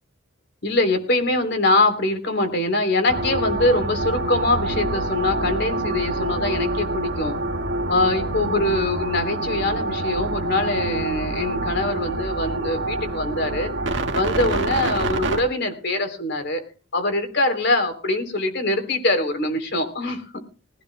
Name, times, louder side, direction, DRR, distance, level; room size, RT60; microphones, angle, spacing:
voice 1, 0.6-7.3 7.9-16.6 16.9-20.2, left 2 dB, 55° left, 7 dB, 3.4 m, -23 dB
sound 1, 3.1-15.4, right 2 dB, 60° right, 1.7 m, -26 dB
20.5 x 15.5 x 2.2 m, 0.38 s
head